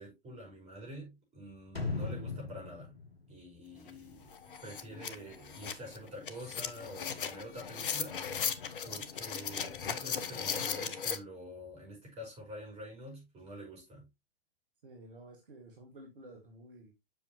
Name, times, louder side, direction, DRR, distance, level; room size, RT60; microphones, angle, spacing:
voice 1, 0.0-2.9 3.3-8.5 8.8-14.1, equal, 20° right, 5.3 m, -47 dB
sound 1, 1.8-4.6 4.9-5.0, left 3 dB, 85° left, 1.4 m, -39 dB
sound 2, 3.9-4.0 4.3-11.2, left 7 dB, 60° left, 0.9 m, -37 dB
voice 2, 14.8-16.9, right 1 dB, 60° right, 1.8 m, -53 dB
7.5 x 6.2 x 3.0 m
figure-of-eight pair, 110°, 30 cm